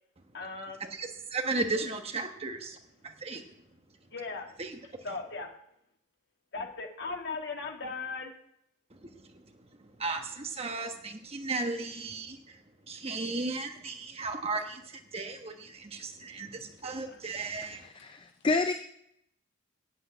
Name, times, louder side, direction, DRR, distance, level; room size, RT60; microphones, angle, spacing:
voice 1, 0.3-0.8 4.1-4.5 5.0-5.5 6.5-8.4 17.1-17.2, left 3 dB, 55° left, 2 dB, 1.9 m, -37 dB
voice 2, 0.9-2.8 3.0-3.4 4.6-4.8 8.9-17.8, right 3 dB, 30° right, 5 dB, 1.2 m, -36 dB
voice 3, 18.0-18.7, left 3 dB, 25° left, 8 dB, 0.5 m, -28 dB
8.4 x 8.0 x 8.7 m, 0.75 s
head